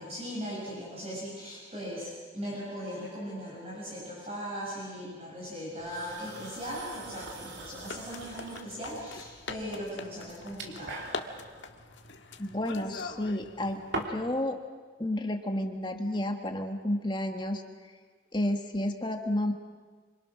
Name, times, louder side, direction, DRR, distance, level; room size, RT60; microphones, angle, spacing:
voice 1, 0.0-11.0, equal, 30° right, -6 dB, 7.3 m, -38 dB
sound 1, 5.8-14.4, right 2 dB, 65° right, 3.3 m, -44 dB
sound 2, 6.2-14.0, left 4 dB, 70° left, 1.6 m, -44 dB
voice 2, 12.4-14.6 15.0-17.6 18.3-19.5, left 1 dB, 25° left, 4 dB, 1.7 m, -31 dB
28.0 x 26.0 x 6.3 m, 1.5 s
head